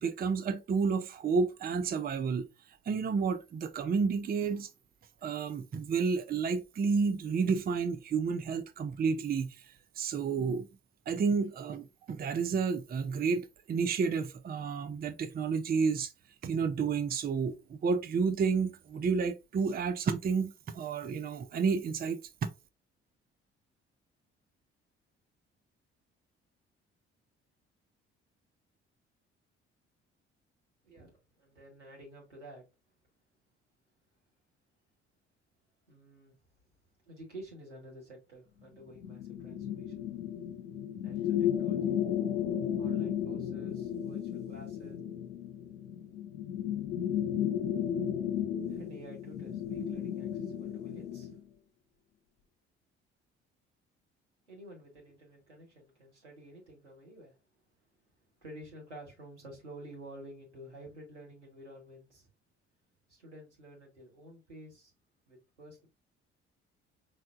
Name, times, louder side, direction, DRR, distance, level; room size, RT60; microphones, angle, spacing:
voice 1, 0.0-2.5 2.9-4.7 5.2-9.6 10.0-10.7 11.1-16.1 16.4-22.5, right 5 dB, 25° right, 0.6 m, -30 dB
voice 2, 30.8-32.6 35.9-36.3 37.0-40.0 41.0-41.9 42.8-45.0 48.7-51.4 54.5-57.6 58.4-62.3 63.1-64.9 65.3-65.9, right 1 dB, 90° right, 1.3 m, -51 dB
sound 1, 39.0-51.4, left 9 dB, 80° left, 0.7 m, -34 dB
5.5 x 3.3 x 2.5 m
figure-of-eight pair, 45°, 34 cm